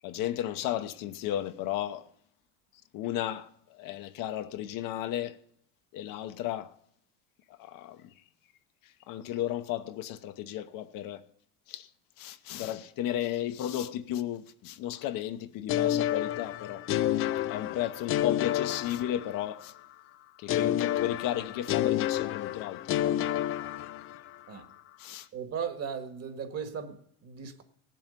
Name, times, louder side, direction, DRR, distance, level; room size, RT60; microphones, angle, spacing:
voice 1, 0.0-2.0 2.9-5.4 5.9-6.7 7.6-8.1 9.1-11.2 11.7-11.9 12.2-16.8 17.5-19.7 20.4-22.8 25.0-25.3, left 12 dB, 60° left, 0.9 m, -34 dB
sound 1, 15.7-19.6 20.5-24.3, left 12 dB, 35° left, 0.4 m, -29 dB
voice 2, 25.3-27.6, right 7 dB, 40° right, 1.7 m, -37 dB
17.0 x 7.8 x 5.2 m
cardioid pair, 135°, 39 cm